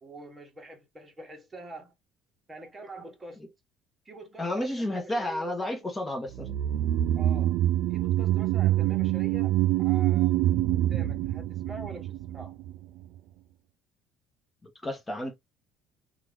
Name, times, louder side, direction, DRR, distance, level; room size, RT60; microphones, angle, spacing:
voice 1, 0.0-1.9 2.5-3.4 4.0-5.9 7.1-7.6 7.9-10.3 10.7-12.5, right 2 dB, 15° right, 1.2 m, -45 dB
voice 2, 4.4-6.5 14.8-15.3, left 1 dB, 15° left, 1.0 m, -31 dB
sound 1, 6.3-12.8 13.0-13.1, right 13 dB, 75° right, 0.4 m, -25 dB
2.9 x 2.4 x 3.3 m
cardioid pair, 135°, 0 cm